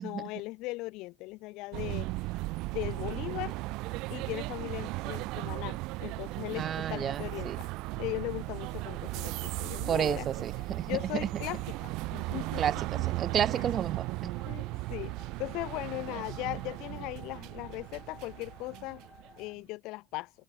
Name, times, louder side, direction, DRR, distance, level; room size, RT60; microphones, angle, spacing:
voice 1, 0.0-2.1 2.7-3.5 4.1-7.7 8.0-10.3 10.9-12.6 13.5-13.7 14.4-19.0 19.4-20.3, left 22 dB, 75° left, 2.5 m, -38 dB
sound 1, 1.7-19.4, right 22 dB, 75° right, 0.6 m, -36 dB
sound 2, 5.8-19.5, left 5 dB, 25° left, 3.4 m, -58 dB
voice 2, 6.6-7.6 9.9-11.0 12.6-12.8 13.1-14.4, right 9 dB, 40° right, 0.8 m, -31 dB
Wind instrument woodwind instrument, 12.0-16.3, left 1 dB, 5° left, 6.1 m, -63 dB
open air
cardioid pair, 125°, 0 cm